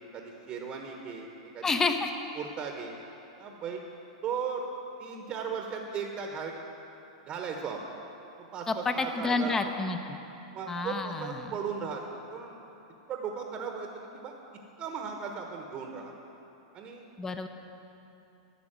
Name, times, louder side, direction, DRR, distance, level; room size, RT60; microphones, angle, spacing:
voice 1, 0.1-1.8 2.3-3.0 3.4-3.8 4.2-4.7 5.0-6.5 7.2-7.8 8.5-9.6 10.5-12.0 12.3-12.6 13.1-14.3 14.8-16.2 16.7-17.1, right 6 dB, 35° right, 2 dB, 1.2 m, -37 dB
voice 2, 1.6-2.1 8.7-10.2 10.7-11.3 17.2-17.5, left 3 dB, 15° left, 7 dB, 0.9 m, -29 dB
11.5 x 6.9 x 9.0 m, 3.0 s
hypercardioid pair, 105°, 3 cm